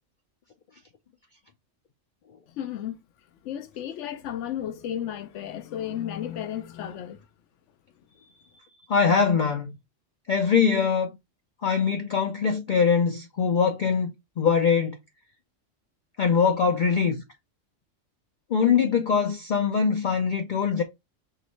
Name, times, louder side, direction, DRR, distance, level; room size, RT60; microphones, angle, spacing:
voice 1, 2.5-3.0 3.4-7.2, left 10 dB, 75° left, 0.9 m, -33 dB
voice 2, 8.9-9.7 10.3-11.1 11.6-14.1 14.4-15.0 16.2-17.2 18.5-20.8, left 6 dB, 55° left, 0.6 m, -22 dB
4.8 x 3.1 x 3.0 m
omnidirectional pair, 1.3 m